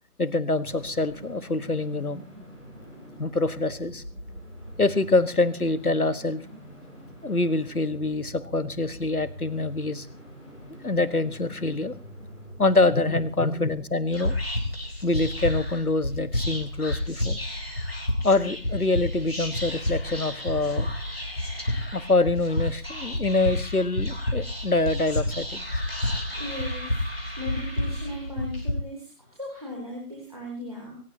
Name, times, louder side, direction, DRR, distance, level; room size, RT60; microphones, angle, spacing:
voice 1, 0.2-2.2 3.2-4.0 4.8-6.4 7.2-10.1 10.8-11.9 12.6-14.3 15.0-17.4 18.2-20.9 21.9-25.6, left 2 dB, 70° left, 14 dB, 1.5 m, -25 dB
sound 1, 0.6-13.8, equal, 5° left, 6.8 m, -44 dB
Whispering, 14.1-28.7, left 1 dB, 40° left, 3.7 m, -30 dB
voice 2, 26.3-27.0 27.4-31.0, left 1 dB, 25° right, -3 dB, 3.3 m, -37 dB
22.0 x 19.0 x 2.8 m, 0.34 s
figure-of-eight pair, 180°, 46 cm